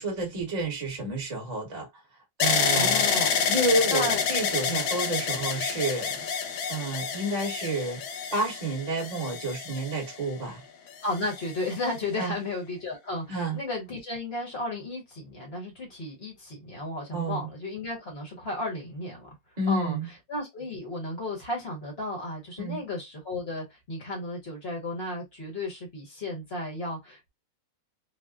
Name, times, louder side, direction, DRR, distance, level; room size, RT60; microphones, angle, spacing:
voice 1, 0.0-1.9 2.4-3.0 3.5-6.3 6.7-8.0 8.3-10.6 12.2-12.3 13.3-13.6 17.1-17.5 19.6-20.1 22.6-22.8, right 2 dB, 25° right, 1.1 m, -30 dB
sound 1, 2.4-10.4 11.1-11.8, left 6 dB, 85° left, 1.5 m, -28 dB
voice 2, 2.7-3.5 3.9-4.2 4.6-4.8 11.0-19.3 19.7-27.3, left 2 dB, 35° left, 1.2 m, -34 dB
4.1 x 2.2 x 2.4 m
omnidirectional pair, 2.2 m